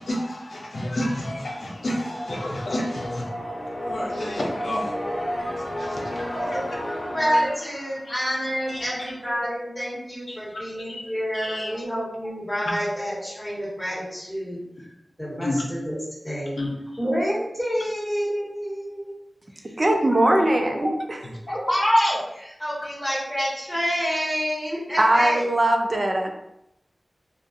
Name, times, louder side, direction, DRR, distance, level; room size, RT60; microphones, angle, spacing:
voice 1, 0.0-3.3 3.8-4.9 5.8-6.2 7.3-7.4 8.0-8.1 8.7-9.1 10.3-10.6 10.9-11.8 15.4-15.6 16.6-16.8, left 1 dB, 75° left, 0.5 m, -30 dB
sound 1, 1.3-9.0, equal, 40° left, 0.8 m, -32 dB
voice 2, 7.0-14.9 15.2-16.0 16.2-16.5 17.0-19.1 20.1-20.3 20.8-20.9 21.5-25.4, equal, 15° left, 1.3 m, -27 dB
voice 3, 19.6-20.9 25.0-26.3, right 1 dB, 45° right, 0.4 m, -20 dB
2.5 x 2.4 x 2.5 m
cardioid pair, 45°, 0 cm